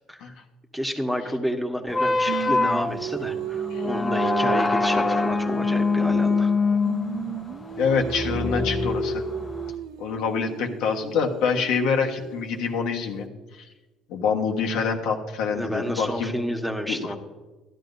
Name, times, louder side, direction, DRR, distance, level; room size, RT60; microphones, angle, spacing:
voice 1, 0.7-6.5 15.5-17.2, equal, ahead, 3 dB, 1.4 m, -30 dB
sound 1, 1.9-9.7, left 3 dB, 25° left, 0.9 m, -24 dB
Singing, 2.3-6.6 6.8-12.8, right 11 dB, 75° right, 0.4 m, -35 dB
voice 2, 7.8-9.2 10.0-13.3 14.1-16.3 16.9-17.1, left 5 dB, 75° left, 2 dB, 1.4 m, -26 dB
14.0 x 11.5 x 2.7 m, 1.2 s
supercardioid pair, 85°, 0 cm